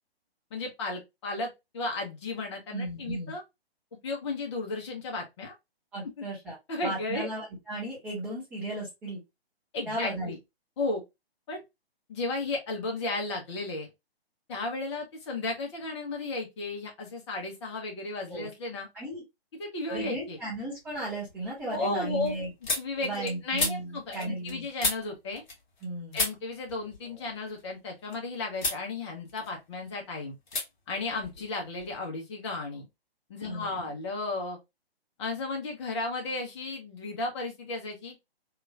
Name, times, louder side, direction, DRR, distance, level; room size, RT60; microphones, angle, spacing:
voice 1, 0.5-3.4 4.0-5.5 6.2-6.3 6.7-7.3 9.7-10.4 10.8-11.0 11.5-11.6 12.1-13.9 14.5-18.9 19.6-20.4 21.7-22.3 22.8-25.4 26.1-30.3 30.9-32.9 33.3-34.6 35.2-38.2, left 3 dB, 25° left, 0.8 m, -34 dB
voice 2, 2.7-3.3 5.9-6.6 6.8-9.2 9.9-10.3 18.3-18.5 18.9-19.2 19.9-22.5 23.0-24.7 25.8-26.2 33.5-34.0, right 1 dB, 5° right, 0.5 m, -35 dB
sound 1, 19.9-20.4 20.8-25.9 26.1-28.2 28.6-28.9 29.2-30.0 30.5-30.7 30.9-32.0, left 3 dB, 45° left, 1.3 m, -35 dB
3.0 x 2.4 x 2.4 m
figure-of-eight pair, 130°, 31 cm